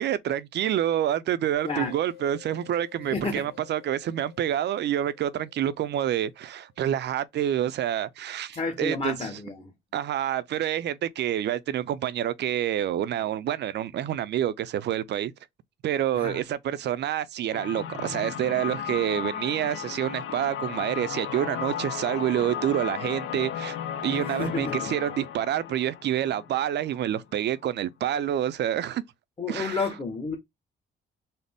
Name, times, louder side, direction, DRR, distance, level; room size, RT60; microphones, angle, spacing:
voice 1, 0.0-9.3 9.9-15.3 15.8-23.8 24.0-29.0 29.5-29.8, right 11 dB, 60° right, 0.5 m, -28 dB
sound 1, 1.5-6.9, left 13 dB, 60° left, 1.7 m, -52 dB
voice 2, 3.1-3.4 8.5-9.7 16.1-16.4 24.1-24.9 29.4-30.4, left 4 dB, 25° left, 0.9 m, -31 dB
sound 2, 17.5-27.2, left 9 dB, 85° left, 0.5 m, -35 dB
4.0 x 2.0 x 3.5 m
cardioid pair, 90°, 20 cm